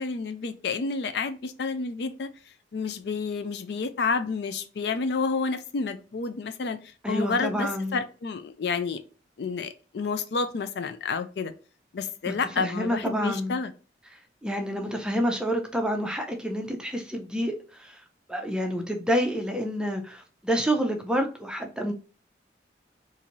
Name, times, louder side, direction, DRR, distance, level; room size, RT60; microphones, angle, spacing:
voice 1, 0.0-2.3 2.7-6.8 7.1-9.0 9.4-11.5 11.9-13.7, left 4 dB, 70° left, 0.4 m, -30 dB
voice 2, 7.0-8.0 12.3-13.6 14.4-17.5 17.8-18.0 18.3-21.9, equal, 5° right, 0.5 m, -28 dB
3.9 x 2.6 x 2.9 m
head